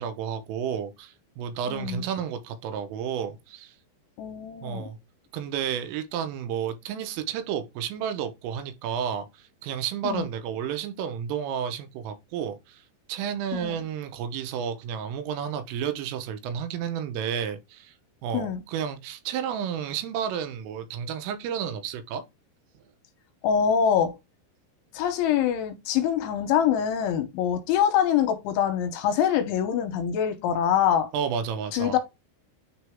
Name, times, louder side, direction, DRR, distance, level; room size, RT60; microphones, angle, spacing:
voice 1, 0.0-3.8 4.6-5.0 5.3-12.8 13.1-17.9 18.2-22.2 31.1-32.0, right 8 dB, 85° right, 3.6 m, -31 dB
voice 2, 1.7-2.1 4.2-4.9 10.0-10.3 13.5-13.8 18.3-18.6 23.4-24.1 24.9-31.1 31.7-32.0, left 9 dB, 80° left, 3.1 m, -24 dB
9.4 x 4.0 x 3.6 m
omnidirectional pair, 5.8 m